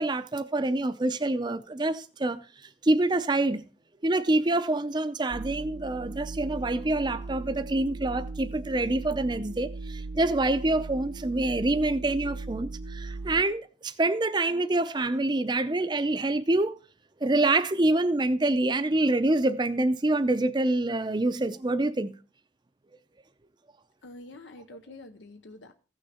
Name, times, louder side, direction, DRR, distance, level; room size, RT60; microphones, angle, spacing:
voice 1, 0.0-3.7 4.0-16.8 17.2-22.1, right 2 dB, 25° right, 0.5 m, -26 dB
sound 1, 5.3-13.4, right 3 dB, 65° right, 0.6 m, -38 dB
voice 2, 24.0-25.7, left 2 dB, 85° left, 0.8 m, -46 dB
15.0 x 6.4 x 4.3 m
head